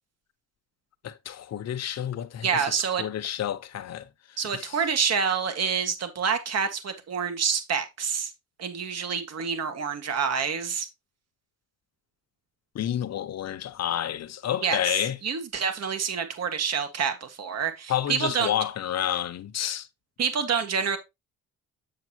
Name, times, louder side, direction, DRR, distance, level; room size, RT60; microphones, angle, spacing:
voice 1, 1.0-2.7 3.0-4.1 4.5-4.8 12.7-15.2 17.9-19.9, left 10 dB, 60° left, 0.9 m, -29 dB
voice 2, 2.4-3.0 4.4-8.3 8.6-10.9 14.6-18.5 20.2-21.0, right 6 dB, 55° right, 1.8 m, -27 dB
7.6 x 7.2 x 2.9 m
cardioid pair, 90°, 30 cm